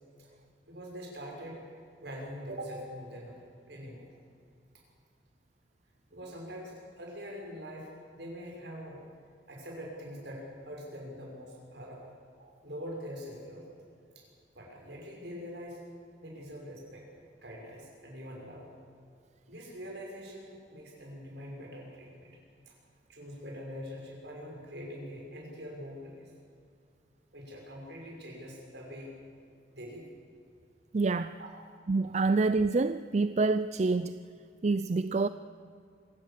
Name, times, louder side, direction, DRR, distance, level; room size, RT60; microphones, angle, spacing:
voice 1, 0.7-1.6 2.0-3.4 3.7-4.1 6.1-9.0 9.5-12.0 12.4-13.6 14.1-14.2 14.5-15.8 16.2-17.0 17.4-18.7 19.5-22.3 22.7-22.8 23.1-26.3 27.3-29.1 29.7-30.1 31.4-31.5, equal, 65° right, 6.3 m, -44 dB
voice 2, 30.9-31.4 31.9-34.2 34.6-35.3, right 3 dB, 40° right, 0.4 m, -27 dB
25.5 x 16.0 x 7.5 m
head